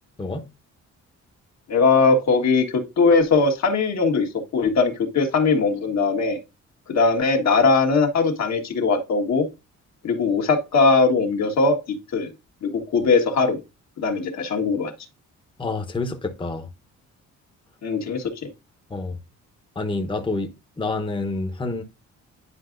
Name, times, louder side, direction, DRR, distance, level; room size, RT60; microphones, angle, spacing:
voice 1, 1.7-6.4 6.9-9.5 10.0-11.8 12.1-12.3 12.6-13.6 14.0-14.9 17.8-18.3, left 4 dB, 65° left, 1.5 m, -20 dB
voice 2, 15.6-16.7 18.9-19.2 19.7-21.8, left 3 dB, 15° left, 0.9 m, -28 dB
9.8 x 4.8 x 2.5 m
cardioid pair, 90°, 30 cm